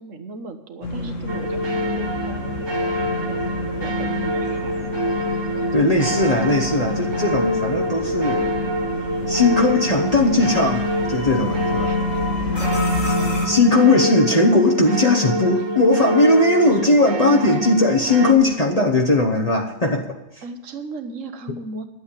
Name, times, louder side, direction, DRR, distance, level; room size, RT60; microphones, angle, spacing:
voice 1, 0.0-3.4 3.8-4.9 11.8-12.0 12.6-12.8 20.4-21.9, right 3 dB, 70° right, 7 dB, 1.5 m, -36 dB
sound 1, 0.8-13.5, left 1 dB, 70° left, 2.1 m, -29 dB
sound 2, 1.3-18.3, left 1 dB, 20° right, 1.1 m, -26 dB
voice 2, 5.7-8.6 9.3-11.9 12.4-12.6 13.4-20.0 20.3-20.4, left 2 dB, 30° left, 0 dB, 1.0 m, -18 dB
11.5 x 8.0 x 8.8 m, 0.94 s
omnidirectional pair, 1.4 m